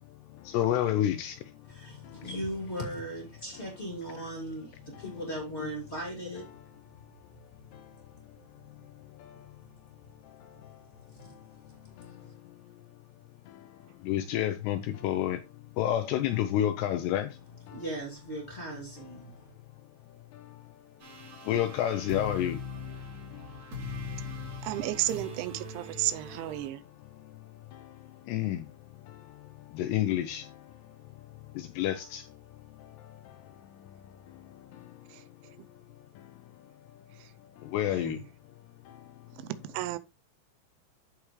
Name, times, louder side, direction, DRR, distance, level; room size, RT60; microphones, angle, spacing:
voice 1, 0.1-2.3 4.9-5.3 5.6-5.7 7.4-9.7 10.2-13.0 13.5-17.4 17.7-17.8 20.1-25.1 25.8-38.2 38.9-39.5, left 11 dB, 80° left, 2.5 m, -34 dB
voice 2, 1.7-6.5 11.1-11.3 12.2-12.3 17.7-19.5, right 1 dB, 25° left, 1.7 m, -38 dB
sound 1, 21.0-26.7, left 4 dB, 30° right, 3.1 m, -41 dB
voice 3, 24.6-26.8 39.7-40.0, right 15 dB, 90° right, 3.0 m, -32 dB
14.5 x 4.8 x 3.1 m
omnidirectional pair, 5.3 m